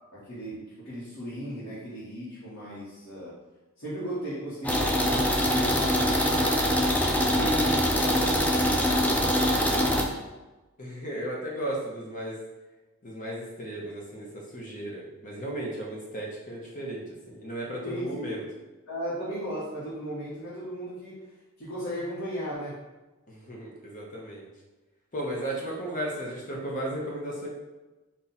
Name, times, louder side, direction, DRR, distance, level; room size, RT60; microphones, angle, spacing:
voice 1, 0.1-3.4 3.8-6.9 7.2-10.2 17.8-18.5 18.9-21.3 21.6-22.8, equal, 65° left, -10 dB, 1.2 m, -36 dB
sound 1, 4.6-10.0, equal, 5° left, 0.3 m, -24 dB
voice 2, 10.8-12.4 13.0-14.3 14.5-18.4 23.3-24.5 25.1-27.5, right 1 dB, 40° left, -3 dB, 0.8 m, -35 dB
4.1 x 2.4 x 3.9 m, 1.1 s
head